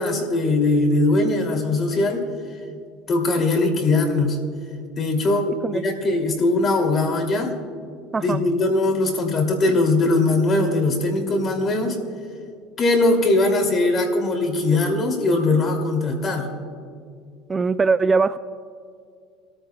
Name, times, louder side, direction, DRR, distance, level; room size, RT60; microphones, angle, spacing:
voice 1, 0.0-2.3 3.1-4.4 5.0-7.5 8.2-12.0 12.8-16.5, left 2 dB, 35° left, 2 dB, 2.7 m, -20 dB
voice 2, 17.5-18.4, right 4 dB, 20° right, 13 dB, 0.3 m, -20 dB
28.0 x 14.0 x 2.3 m, 2.2 s
supercardioid pair, 110°, 0 cm